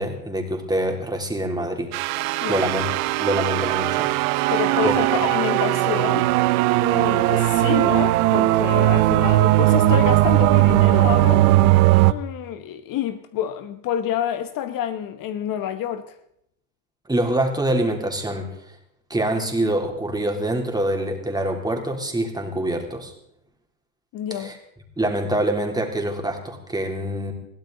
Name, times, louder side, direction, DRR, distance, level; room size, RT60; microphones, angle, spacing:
voice 1, 0.0-1.9 2.5-2.9 3.2-4.1 4.4-4.6 4.8-4.9 17.1-18.5 19.1-23.1 24.3-24.6 25.0-27.3, right 1 dB, 10° right, 3.1 m, -25 dB
sound 1, 1.9-12.1, right 16 dB, 85° right, 0.8 m, -18 dB
voice 2, 2.4-2.7 4.5-6.3 6.8-11.5 12.1-16.1 24.1-24.5, left 10 dB, 50° left, 1.1 m, -28 dB
22.0 x 15.5 x 3.9 m
supercardioid pair, 115°, 42 cm